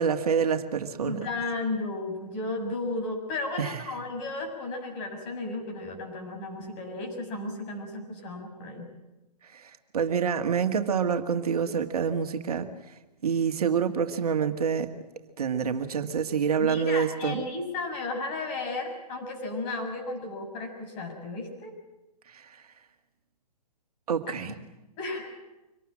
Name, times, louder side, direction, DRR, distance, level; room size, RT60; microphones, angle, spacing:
voice 1, 0.0-1.2 3.6-3.8 9.5-12.7 13.2-14.9 15.4-17.4 22.3-22.6 24.1-24.5, right 6 dB, 60° right, 7 dB, 1.9 m, -27 dB
voice 2, 1.0-8.9 16.6-21.7 24.4-24.5 25.0-25.4, left 2 dB, 30° left, 2 dB, 6.9 m, -34 dB
24.5 x 19.5 x 8.8 m, 1.0 s
figure-of-eight pair, 130°, 21 cm